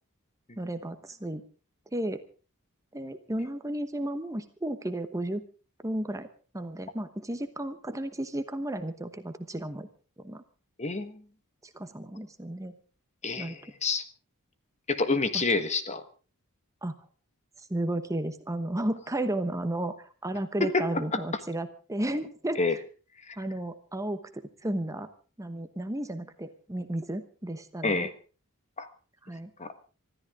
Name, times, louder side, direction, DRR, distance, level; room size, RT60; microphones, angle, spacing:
voice 1, 0.6-1.4 1.9-2.2 2.9-5.4 5.8-6.3 6.5-9.9 10.2-10.4 11.7-12.7 13.4-13.5 15.3-15.4 16.8-16.9 17.7-19.9 20.2-22.8 23.4-25.1 25.4-28.1 29.2-29.5, right 1 dB, 15° right, 10 dB, 1.0 m, -33 dB
voice 2, 10.8-11.2 13.2-14.0 14.9-16.0 20.6-20.8 21.1-21.2 22.6-22.8 23.3-23.4 27.8-28.1 28.8-28.9 29.6-29.7, left 3 dB, 30° left, 10 dB, 1.5 m, -28 dB
25.5 x 13.5 x 3.7 m, 0.36 s
head